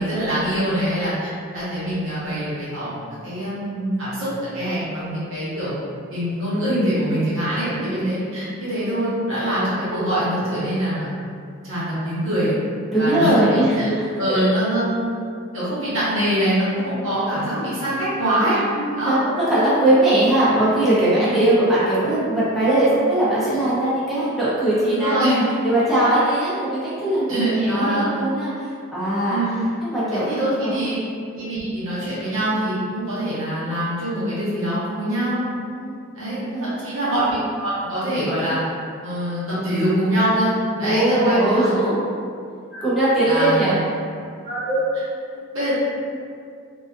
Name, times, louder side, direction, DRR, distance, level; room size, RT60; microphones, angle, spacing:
voice 1, 0.0-5.7 6.1-11.1 11.6-12.5 13.0-13.9 14.2-15.1 15.5-18.6 19.0-19.1 21.2-21.5 24.9-25.4 27.3-28.1 29.3-29.6 30.1-31.0 31.3-35.4 36.1-38.6 39.0-40.5 40.8-41.7 42.7-42.8 43.3-43.8 44.4-45.0 45.3-45.7, right 1 dB, 70° right, -10 dB, 1.0 m, -24 dB
voice 2, 12.9-14.4 18.7-25.4 25.6-29.4 29.8-30.2 30.6-30.8 35.7-36.8 40.8-41.9 42.8-43.8, right 1 dB, ahead, -12 dB, 0.6 m, -20 dB
2.4 x 2.3 x 2.5 m, 2.3 s
head